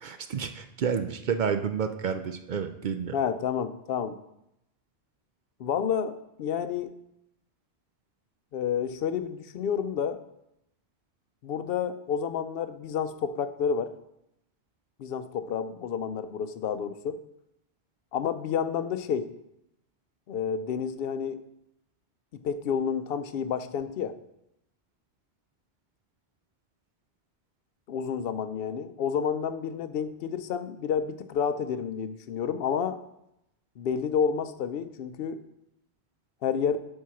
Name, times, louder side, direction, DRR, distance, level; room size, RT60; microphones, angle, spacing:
voice 1, 0.0-3.2, right 7 dB, 60° right, 8 dB, 0.6 m, -30 dB
voice 2, 3.1-4.2 5.6-6.9 8.5-10.2 11.4-13.9 15.0-17.2 18.1-19.3 20.3-21.4 22.4-24.2 27.9-33.0 33.8-35.4 36.4-36.8, left 7 dB, 65° left, 11 dB, 0.7 m, -30 dB
7.5 x 4.7 x 5.7 m, 0.83 s
omnidirectional pair, 1.1 m